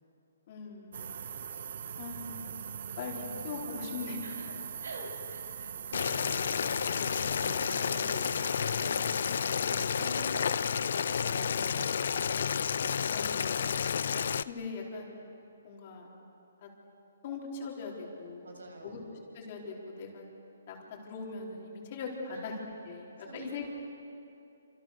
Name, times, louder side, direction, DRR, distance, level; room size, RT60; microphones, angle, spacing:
voice 1, 0.5-1.5 2.0-2.3 3.0-4.2 7.8-7.9 13.1-13.8 14.5-15.2 15.6-16.1 16.6-16.7 17.2-18.5 18.8-19.0 19.3-20.2 20.7-22.5 22.8-23.7, left 4 dB, 30° left, -2 dB, 4.3 m, -41 dB
sound 1, 0.9-10.2, right 8 dB, 45° right, 0.9 m, -42 dB
voice 2, 4.2-6.7 7.0-12.3 18.4-19.1 22.3-22.5 23.2-23.6, right 2 dB, 80° right, 3 dB, 7.1 m, -47 dB
Boiling, 5.9-14.4, left 7 dB, 55° left, 0.7 m, -30 dB
29.5 x 27.0 x 6.8 m, 2.8 s
hypercardioid pair, 170°, 0 cm